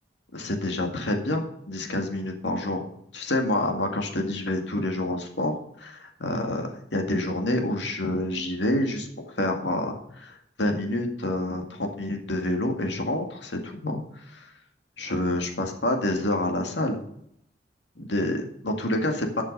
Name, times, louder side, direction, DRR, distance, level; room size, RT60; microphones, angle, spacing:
voice 1, 0.3-2.8 3.1-14.5 15.0-17.0 18.0-19.4, left 1 dB, 85° left, 3 dB, 2.0 m, -28 dB
11.5 x 6.2 x 5.4 m, 0.71 s
head